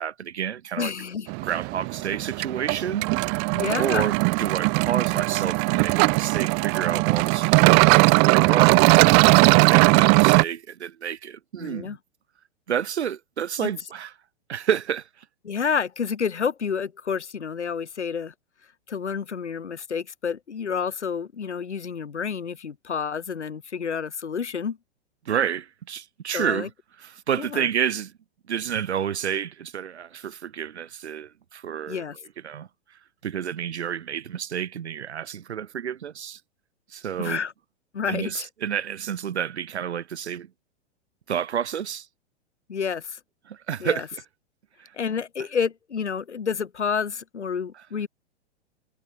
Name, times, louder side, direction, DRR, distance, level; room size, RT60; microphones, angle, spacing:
voice 1, 0.0-0.9 1.4-3.5 3.8-12.0 12.7-14.1 14.5-15.2 25.2-26.7 27.0-28.1 28.5-32.0 32.4-36.4 36.9-37.4 38.1-40.5 41.3-42.1 43.5-44.0 44.8-44.9, right 8 dB, 70° right, 1.5 m, -30 dB
voice 2, 0.8-1.3 3.5-4.1 11.6-12.0 15.4-18.3 18.9-24.8 26.3-26.7 27.4-27.7 31.9-32.2 37.2-37.5 37.9-38.5 42.7-43.2 43.8-44.0 44.9-48.1, left 6 dB, 75° left, 2.7 m, -29 dB
sound 1, 1.3-10.4, right 40 dB or more, 20° right, 0.4 m, -19 dB
figure-of-eight pair, 105°, 35 cm